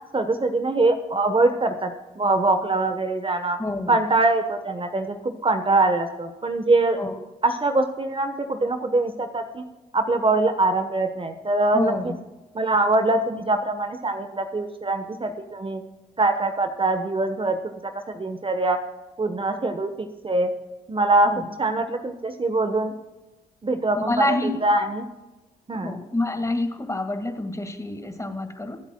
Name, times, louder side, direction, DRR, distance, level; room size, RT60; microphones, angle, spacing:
voice 1, 0.1-3.6 3.9-7.0 7.4-9.6 9.9-12.1 12.5-15.8 16.2-18.8 19.2-20.5 20.9-21.3 21.6-22.9 23.6-25.0 25.7-26.0, right 2 dB, 30° right, 7 dB, 1.2 m, -23 dB
voice 2, 3.6-3.9 7.0-7.2 11.7-12.2 21.3-21.4 24.1-24.6 25.7-28.8, left 2 dB, 15° left, 6 dB, 2.0 m, -27 dB
24.0 x 8.1 x 2.4 m, 1.1 s
hypercardioid pair, 45°, 18 cm